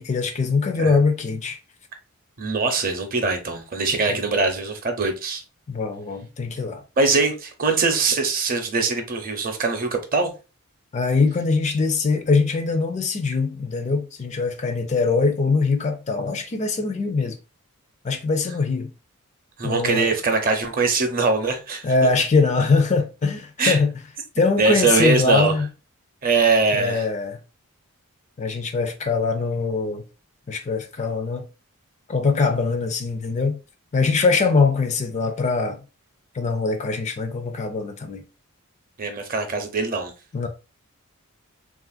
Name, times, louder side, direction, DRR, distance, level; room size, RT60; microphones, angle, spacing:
voice 1, 0.0-1.6 4.1-4.2 5.7-6.8 10.9-17.4 18.0-18.9 19.6-20.1 21.8-23.9 24.4-25.7 26.7-27.4 28.4-30.0 30.5-31.5 32.1-33.6 33.9-35.8 36.3-38.2 40.3-40.5, left 4 dB, 30° left, 0.4 m, -22 dB
voice 2, 2.4-5.4 7.0-10.3 19.6-21.8 23.6-23.8 24.6-25.5 26.2-27.0 39.0-40.1, right 4 dB, 40° right, 0.6 m, -22 dB
3.2 x 2.4 x 2.3 m
head